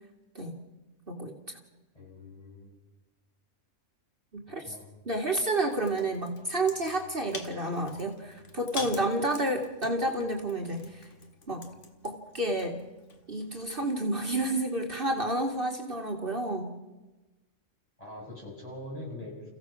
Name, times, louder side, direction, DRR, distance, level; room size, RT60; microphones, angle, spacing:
voice 1, 1.1-1.6 4.3-4.8 5.1-11.1 11.5-11.7 12.0-12.8 13.3-16.7, right 1 dB, 45° right, 2 dB, 2.2 m, -30 dB
voice 2, 1.9-2.7 4.5-4.9 18.0-19.5, left 1 dB, 25° left, -3 dB, 7.3 m, -43 dB
sound 1, 5.7-14.0, left 4 dB, 65° left, 2.0 m, -46 dB
29.5 x 16.0 x 6.0 m, 1.1 s
omnidirectional pair, 1.4 m